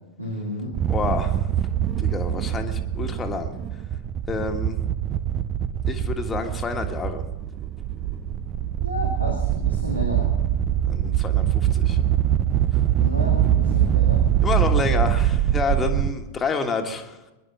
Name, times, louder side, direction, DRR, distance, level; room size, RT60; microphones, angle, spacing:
voice 1, 0.2-0.7 8.8-10.3 13.0-14.3, left 1 dB, 85° right, 0 dB, 2.3 m, -31 dB
sound 1, 0.7-16.1, right 11 dB, 30° right, 0.6 m, -23 dB
voice 2, 0.9-1.5 2.0-3.6 4.3-4.8 5.9-7.2 10.9-12.0 14.4-17.2, left 4 dB, 20° left, 4 dB, 1.6 m, -28 dB
22.5 x 11.0 x 5.8 m, 1.1 s
figure-of-eight pair, 90°, 0 cm